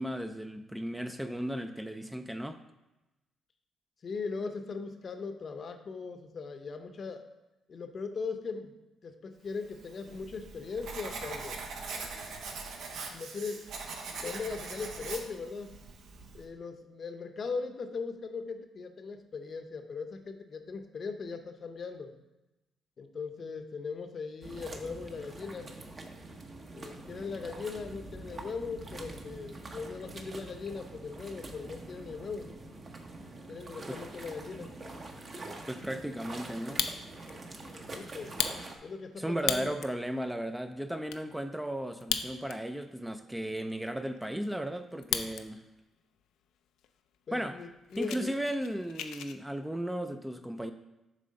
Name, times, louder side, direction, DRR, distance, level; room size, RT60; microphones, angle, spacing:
voice 1, 0.0-2.6 33.9-34.0 35.7-36.8 39.2-45.6 47.3-47.6 48.0-50.7, right 1 dB, 5° right, 7 dB, 0.3 m, -35 dB
voice 2, 4.0-7.2 7.7-8.7 9.0-11.6 13.1-13.7 14.2-15.7 16.3-22.1 23.0-25.7 26.7-32.5 33.5-34.7 37.9-38.4 38.8-39.8 47.3-48.3, left 4 dB, 45° left, 7 dB, 0.7 m, -39 dB
Writing, 9.7-16.5, right 4 dB, 80° right, 0.9 m, -42 dB
sound 1, 24.4-38.8, right 2 dB, 40° right, 0.8 m, -45 dB
Fire, 36.5-37.3 37.7-37.8 38.2-40.0 40.5-40.6 40.7-41.2 41.9-42.8 43.1-43.2 43.7-45.4 45.8-46.2 46.8-46.9 47.1-47.3 47.6-49.4, left 9 dB, 85° left, 0.4 m, -35 dB
7.5 x 3.3 x 5.2 m, 0.99 s
cardioid pair, 90°, 0 cm